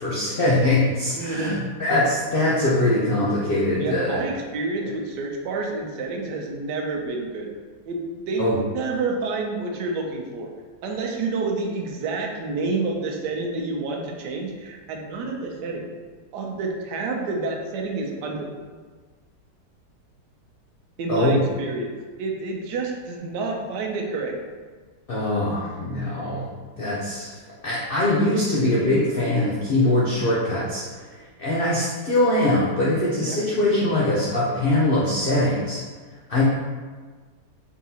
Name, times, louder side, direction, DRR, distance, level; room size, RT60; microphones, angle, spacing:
voice 1, 0.0-4.2 8.4-8.6 21.1-21.4 25.1-26.5 26.8-27.3 27.6-30.8 31.4-35.8 36.3-36.4, left 1 dB, 85° left, -6 dB, 0.5 m, -22 dB
voice 2, 1.1-1.6 3.8-7.5 7.9-10.5 10.8-15.9 16.3-18.5 21.0-21.9 22.2-24.4 33.2-33.4, right 3 dB, 80° right, 1 dB, 1.2 m, -29 dB
3.9 x 3.6 x 2.8 m, 1.4 s
omnidirectional pair, 1.8 m